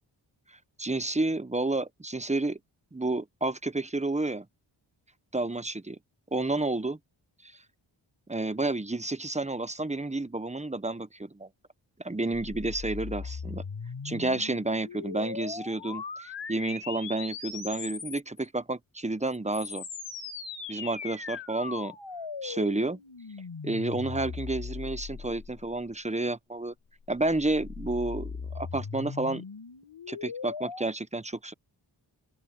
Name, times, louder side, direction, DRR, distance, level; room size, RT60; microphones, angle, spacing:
voice 1, 0.8-2.6 2.9-4.5 5.3-6.0 6.3-7.0 7.4-7.5 8.3-11.5 12.0-13.6 14.0-19.8 20.7-22.0 22.4-23.0 23.6-26.7 27.1-29.4 30.1-31.5, right 2 dB, 15° right, 1.1 m, -30 dB
sound 1, 12.3-18.4 19.3-25.9 27.0-30.9, left 5 dB, 65° left, 6.6 m, -39 dB
open air
cardioid pair, 45°, 48 cm